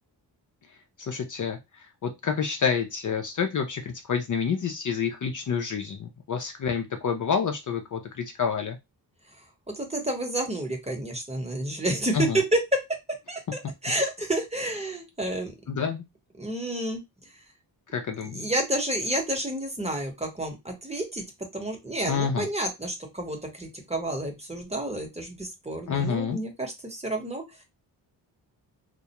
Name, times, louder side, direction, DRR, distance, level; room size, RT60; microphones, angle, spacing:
voice 1, 1.0-8.8 12.1-12.4 15.7-16.0 17.9-18.5 22.1-22.5 25.9-26.4, left 6 dB, 45° left, 5 dB, 0.5 m, -28 dB
voice 2, 9.8-12.8 13.3-15.5 16.4-17.0 18.2-21.2 21.5-27.4, right 1 dB, 15° right, 2 dB, 0.9 m, -30 dB
2.2 x 2.2 x 2.8 m, 0.21 s
cardioid pair, 65°, 44 cm